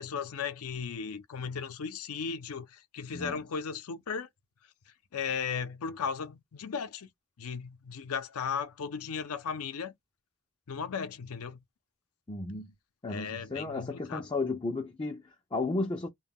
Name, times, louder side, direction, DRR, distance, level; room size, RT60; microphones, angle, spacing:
voice 1, 0.0-4.3 5.1-7.1 7.4-9.9 10.7-11.6 13.1-14.2, left 6 dB, 75° left, 0.5 m, -36 dB
voice 2, 12.3-12.7 13.0-16.1, left 3 dB, 20° left, 0.4 m, -34 dB
2.2 x 2.1 x 3.4 m
head